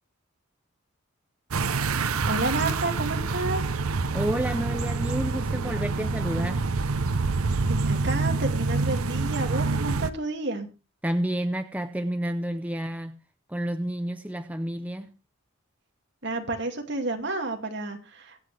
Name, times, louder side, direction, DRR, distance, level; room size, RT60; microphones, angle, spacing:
sound 1, 1.5-10.1, right 3 dB, 85° right, 0.8 m, -26 dB
voice 1, 2.3-3.6 7.7-10.7 16.2-18.4, right 2 dB, 55° right, 2.4 m, -30 dB
voice 2, 4.1-6.6 11.0-13.2 13.5-15.1, right 1 dB, 5° right, 0.6 m, -30 dB
23.5 x 8.2 x 3.4 m
head